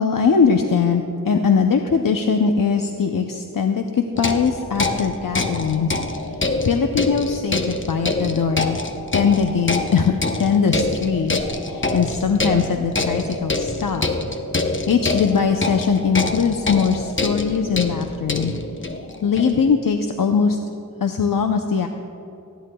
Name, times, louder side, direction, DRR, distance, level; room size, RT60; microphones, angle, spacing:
voice 1, 0.0-6.0 6.3-6.4 6.6-8.8 9.1-10.1 10.4-11.4 11.7-14.1 14.9-18.5 18.8-18.9 19.2-20.6 21.0-21.9, left 6 dB, 75° left, 5 dB, 0.6 m, -20 dB
sound 1, 4.1-19.7, left 2 dB, 35° left, 0.8 m, -26 dB
19.5 x 14.5 x 2.3 m, 2.7 s
wide cardioid pair, 60°, 33 cm